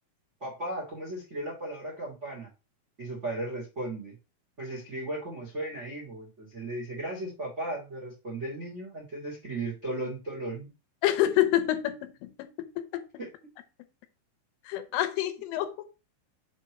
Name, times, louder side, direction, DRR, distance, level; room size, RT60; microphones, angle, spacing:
voice 1, 0.4-2.5 3.0-4.1 4.6-10.7 13.2-13.5, right 1 dB, 85° right, 0.6 m, -36 dB
voice 2, 11.0-13.0 14.7-15.7, left 13 dB, 85° left, 3.3 m, -27 dB
7.3 x 3.2 x 5.9 m
omnidirectional pair, 5.6 m